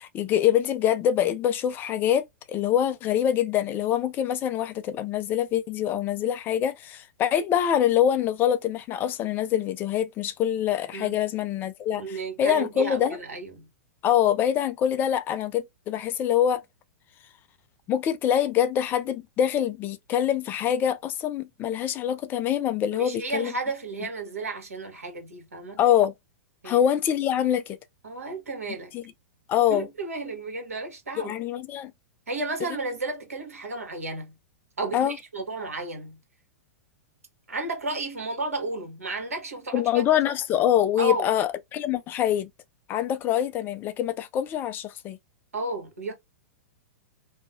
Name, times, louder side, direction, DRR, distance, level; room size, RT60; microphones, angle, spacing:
voice 1, 0.0-13.2 14.0-16.6 17.9-23.5 25.8-26.1 26.6-27.8 28.9-29.0 29.5-29.9 31.2-31.9 34.9-35.2 39.7-42.5 42.9-45.2, left 10 dB, 25° left, 0.3 m, -25 dB
voice 2, 12.0-13.7 22.9-25.8 26.6-26.8 28.0-28.9 29.7-31.3 32.3-34.3 34.8-36.2 37.5-40.0 41.0-41.3 45.5-46.1, right 3 dB, 75° right, 1.2 m, -33 dB
2.8 x 2.1 x 2.5 m
figure-of-eight pair, 105°, 8 cm